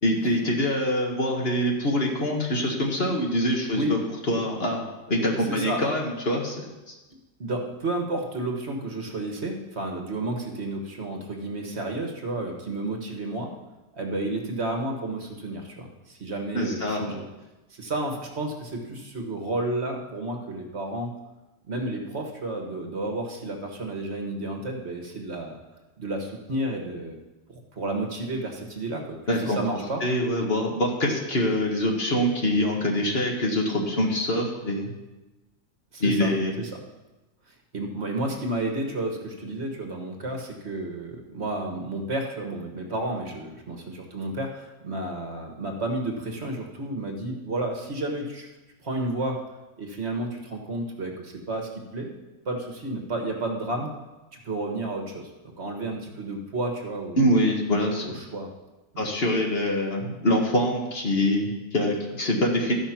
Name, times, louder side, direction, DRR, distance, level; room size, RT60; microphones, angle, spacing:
voice 1, 0.0-4.0 4.3-4.8 5.1-6.6 6.9-7.0 16.5-17.1 29.3-29.6 30.0-34.9 36.0-36.5 57.2-58.2 59.0-62.7, left 1 dB, 45° left, 0 dB, 1.7 m, -24 dB
voice 2, 5.5-5.8 7.4-13.5 13.9-17.3 17.7-21.1 21.7-25.6 26.0-27.2 27.5-30.0 35.9-36.3 37.7-48.5 48.8-49.4 49.8-52.1 52.4-53.9 54.3-57.2 58.0-58.5 58.9-59.1, right 2 dB, 50° right, 2 dB, 1.5 m, -31 dB
13.0 x 5.6 x 5.9 m, 1.1 s
omnidirectional pair, 1.4 m